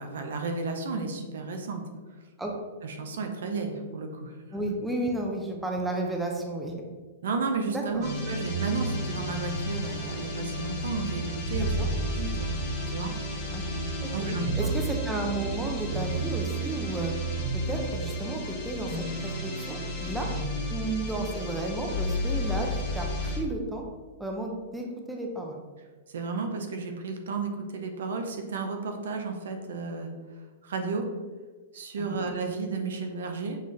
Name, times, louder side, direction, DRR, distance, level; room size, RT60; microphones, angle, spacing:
voice 1, 0.0-1.8 2.8-4.4 7.2-11.9 12.1-12.5 12.9-13.1 14.1-14.5 26.1-30.1 30.6-31.0 31.7-33.6, right 4 dB, 75° right, 4 dB, 0.6 m, -32 dB
voice 2, 4.5-6.7 7.7-8.1 11.8-11.9 13.5-13.6 14.0-17.1 17.5-18.9 19.2-20.3 20.7-23.8 24.2-25.6 32.1-32.2, right 2 dB, 5° right, 0 dB, 0.6 m, -32 dB
sound 1, 8.0-23.4, equal, 45° left, 1.2 m, -32 dB
5.7 x 2.5 x 3.2 m, 1.4 s
hypercardioid pair, 130°, 0 cm